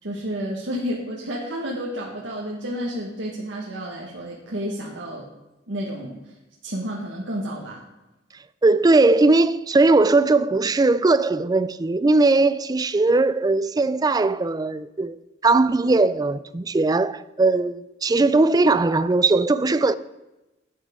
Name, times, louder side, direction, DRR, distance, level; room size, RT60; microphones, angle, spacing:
voice 1, 0.0-5.3 5.7-6.3 6.6-7.8, equal, 80° right, 1.5 m, -31 dB
voice 2, 8.6-15.2 15.4-19.9, right 3 dB, 20° right, 0.4 m, -19 dB
11.5 x 9.4 x 3.7 m
head